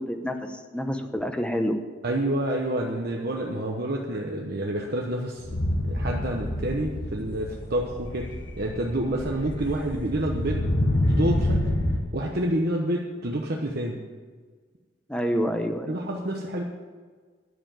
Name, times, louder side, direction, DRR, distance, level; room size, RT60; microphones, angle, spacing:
voice 1, 0.0-1.8 15.1-15.9, equal, 5° left, 6 dB, 0.9 m, -28 dB
voice 2, 2.0-5.5 5.8-8.3 8.6-10.6 11.1-11.6 12.1-14.0 15.9-16.6, right 1 dB, 55° right, -1 dB, 1.1 m, -28 dB
sound 1, 5.4-12.0, left 1 dB, 80° left, 1.6 m, -27 dB
10.5 x 7.0 x 9.0 m, 1.5 s
head